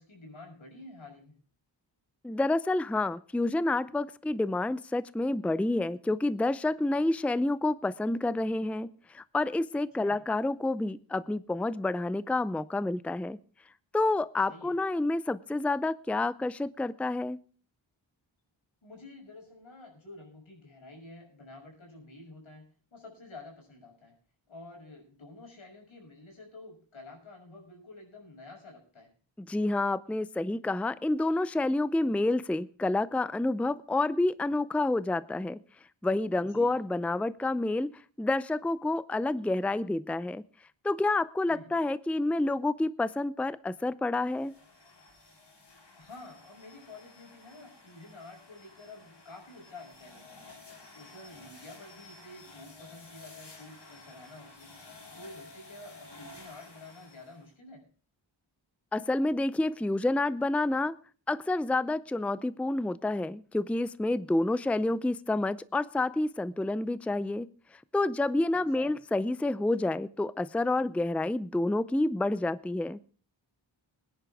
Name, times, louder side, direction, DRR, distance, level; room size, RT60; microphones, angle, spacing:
voice 1, 0.0-1.4 10.0-10.2 14.5-14.7 18.8-22.7 22.9-24.1 24.5-29.1 36.5-36.8 41.5-41.7 45.9-50.5 50.9-57.8 68.5-69.0, left 2 dB, 85° left, 0 dB, 6.4 m, -50 dB
voice 2, 2.2-13.4 13.9-17.4 29.5-35.6 36.0-37.9 38.2-40.4 40.8-44.5 58.9-61.0 61.3-67.5 67.9-73.0, left 2 dB, 5° left, 17 dB, 0.5 m, -29 dB
sound 1, 44.3-57.5, left 3 dB, 60° left, 3.8 m, -52 dB
20.5 x 10.5 x 3.5 m, 0.40 s
cardioid pair, 50°, 46 cm